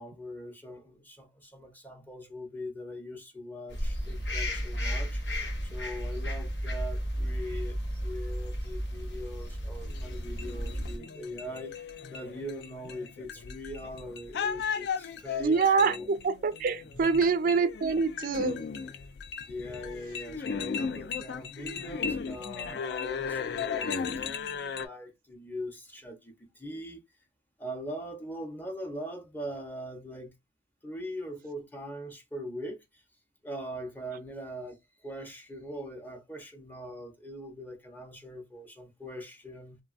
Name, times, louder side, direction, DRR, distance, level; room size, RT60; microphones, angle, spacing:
voice 1, 0.0-5.2 5.6-7.8 8.0-16.1 16.9-17.3 19.5-23.9 24.6-27.0 27.6-30.3 30.8-33.0 33.4-34.8 35.0-39.8, equal, 10° left, 0.7 m, -41 dB
sound 1, 3.7-11.0, equal, 80° left, 1.5 m, -33 dB
sound 2, 9.8-24.9, left 6 dB, 65° left, 0.4 m, -36 dB
voice 2, 15.4-18.6, right 5 dB, 50° right, 0.3 m, -25 dB
3.0 x 2.3 x 2.4 m
head